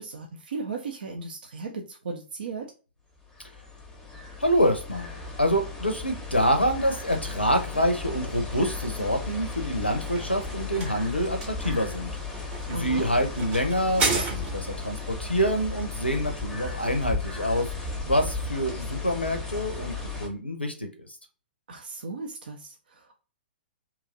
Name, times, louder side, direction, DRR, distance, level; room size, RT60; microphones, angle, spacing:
voice 1, 0.0-2.7 12.7-13.1 21.7-23.2, right 3 dB, 60° right, 2 dB, 0.5 m, -36 dB
sound 1, 3.2-20.3, left 3 dB, 10° left, 0.7 m, -35 dB
voice 2, 4.4-12.1 12.7-19.9 20.2-21.1, equal, 90° left, 6 dB, 0.5 m, -26 dB
sound 2, 9.7-14.9, right 3 dB, 25° right, 0.8 m, -33 dB
2.9 x 2.4 x 3.8 m, 0.35 s
figure-of-eight pair, 115°, 6 cm